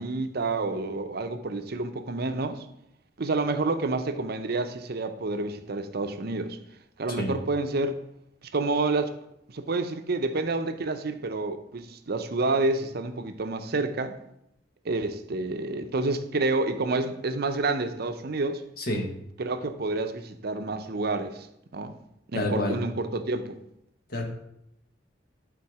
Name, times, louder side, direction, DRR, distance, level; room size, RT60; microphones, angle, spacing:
voice 1, 0.0-2.6 3.2-6.6 7.0-8.0 8.5-9.1 9.5-14.2 14.8-18.6 19.4-21.5 21.7-21.9 22.3-23.6, right 3 dB, 60° right, 8 dB, 0.7 m, -29 dB
voice 2, 18.8-19.1 22.3-22.8 24.1-24.2, left 1 dB, 55° left, 2 dB, 1.5 m, -28 dB
11.5 x 3.8 x 4.8 m, 0.78 s
head